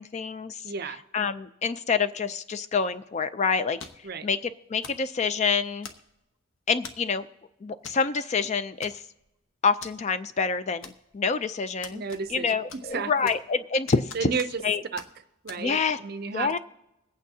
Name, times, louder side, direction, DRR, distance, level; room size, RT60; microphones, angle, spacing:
voice 1, 0.0-0.7 1.1-3.8 4.2-5.9 6.7-7.3 7.6-9.0 9.6-12.0 12.3-14.3 14.6-14.8 15.6-16.0 16.3-16.6, left 5 dB, 30° left, 12 dB, 0.3 m, -27 dB
voice 2, 0.6-1.0 4.0-4.3 11.9-12.5 12.9-13.1 14.1-14.6 14.9-15.0 15.4-16.6, right 5 dB, 45° right, 12 dB, 0.5 m, -32 dB
sound 1, 3.8-4.1 4.8-5.1 5.8-6.3 6.8-7.1 7.8-8.0 8.3-8.4 8.8-9.3 9.8-9.9 10.8-11.3 11.8-12.4 12.7-13.5 13.9-14.7 15.0-15.1 15.5-15.6, left 5 dB, 70° left, 0.9 m, -44 dB
22.5 x 8.7 x 2.7 m, 0.92 s
head